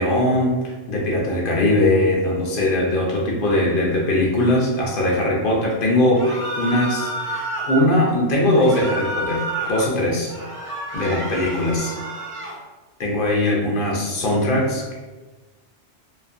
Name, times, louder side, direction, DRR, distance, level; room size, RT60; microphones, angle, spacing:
voice 1, 0.0-6.3 6.5-10.3 10.9-11.9 13.0-14.9, left 1 dB, 60° left, -3 dB, 0.6 m, -20 dB
sound 1, 6.1-7.8 8.5-9.9 10.3-12.6, right 1 dB, 20° right, 0.3 m, -29 dB
2.6 x 2.3 x 2.4 m, 1.2 s
omnidirectional pair, 1.2 m